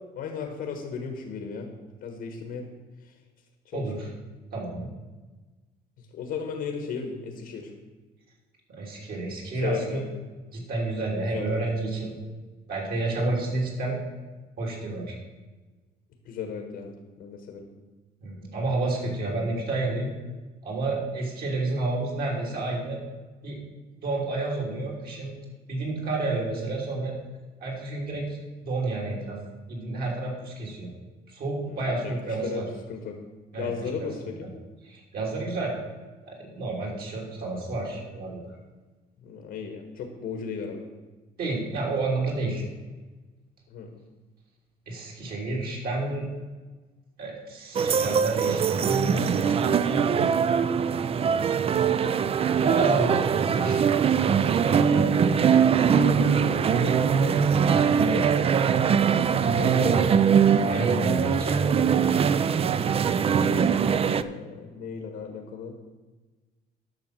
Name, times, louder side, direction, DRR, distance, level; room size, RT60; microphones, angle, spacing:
voice 1, 0.0-1.7 2.0-2.7 3.0-3.1 3.6-4.1 6.0-7.7 9.5-10.1 11.2-11.6 16.2-17.6 31.7-33.2 33.5-34.5 39.2-40.9 43.7-43.9 55.9-57.4 57.9-58.5 59.4-60.2 61.3-61.8 63.2-63.7 64.1-65.7, left 6 dB, 70° left, 4 dB, 1.4 m, -36 dB
voice 2, 4.5-4.9 8.7-10.0 10.5-12.1 12.7-14.0 14.6-15.2 18.2-20.1 20.6-23.0 23.4-23.6 24.0-25.3 25.7-27.1 27.6-28.4 28.6-29.4 29.7-30.9 31.3-32.7 33.5-33.7 34.0-34.1 34.9-35.8 36.2-38.4 41.4-42.6 44.9-46.3 47.2-50.0 52.5-55.6 57.7-57.9 60.6-61.9 63.4-63.7, right 2 dB, 60° right, -2 dB, 3.4 m, -30 dB
sound 1, 47.8-64.2, right 7 dB, 35° right, 0.4 m, -22 dB
10.5 x 6.4 x 6.1 m, 1.3 s
cardioid pair, 110°, 17 cm